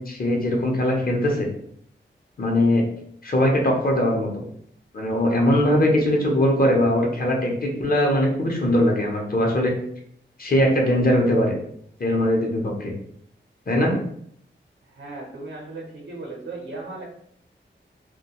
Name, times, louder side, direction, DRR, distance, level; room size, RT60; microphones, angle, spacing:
voice 1, 0.0-1.5 2.4-2.8 3.2-4.4 4.9-9.7 10.4-11.6 12.0-12.9 13.7-14.0, left 1 dB, 50° left, 0 dB, 0.7 m, -21 dB
voice 2, 14.9-17.0, right 2 dB, 90° right, -1 dB, 0.7 m, -36 dB
2.2 x 2.2 x 2.8 m, 0.66 s
wide cardioid pair, 75°, 20 cm